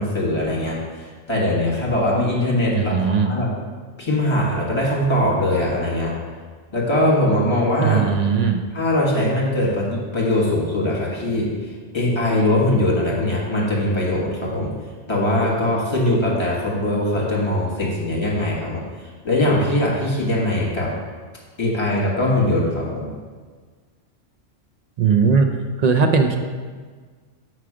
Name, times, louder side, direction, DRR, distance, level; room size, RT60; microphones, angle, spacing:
voice 1, 0.0-3.5 4.0-6.2 6.7-8.1 8.7-11.5 11.9-14.8 15.1-20.9 21.6-23.2, left 1 dB, 25° left, -5 dB, 1.5 m, -21 dB
voice 2, 2.8-3.3 7.8-8.6 25.0-25.5 25.8-26.4, right 5 dB, 60° right, 4 dB, 0.4 m, -18 dB
6.0 x 4.7 x 4.9 m, 1.5 s
omnidirectional pair, 1.2 m